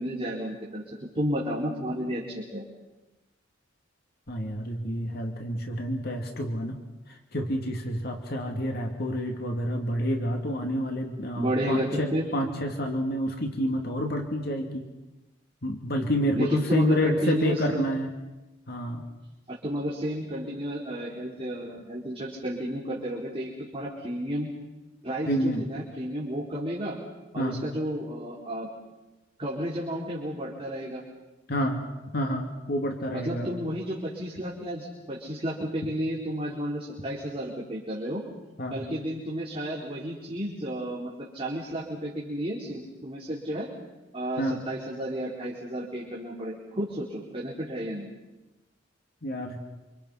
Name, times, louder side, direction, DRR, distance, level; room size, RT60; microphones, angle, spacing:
voice 1, 0.0-2.7 11.3-12.3 16.3-17.8 19.5-24.5 25.0-27.0 27.3-28.7 29.4-31.0 33.1-38.2 38.7-43.7 44.1-48.1, equal, 30° right, -5 dB, 4.4 m, -32 dB
voice 2, 4.3-6.8 7.1-14.9 15.6-18.1 18.7-19.0 25.3-25.7 27.3-27.6 31.5-31.8 32.1-33.5 38.6-38.8 44.4-44.6 49.2-49.6, equal, 55° left, 3 dB, 2.6 m, -29 dB
28.5 x 27.0 x 5.8 m, 1.1 s
head